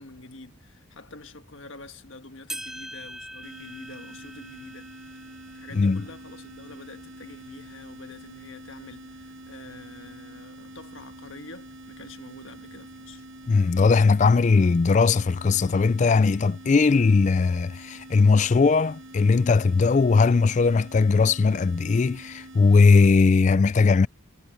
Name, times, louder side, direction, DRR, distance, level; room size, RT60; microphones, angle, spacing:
voice 1, 0.0-5.3 5.5-13.3, left 2 dB, 65° left, 1.6 m, -46 dB
sound 1, 2.5-7.1 7.6-7.7 8.5-8.6 9.6-9.7, right 1 dB, ahead, 3.8 m, -43 dB
sound 2, 3.4-23.1, right 1 dB, 65° right, 7.5 m, -46 dB
voice 2, 13.5-24.1, left 4 dB, 35° left, 0.3 m, -19 dB
head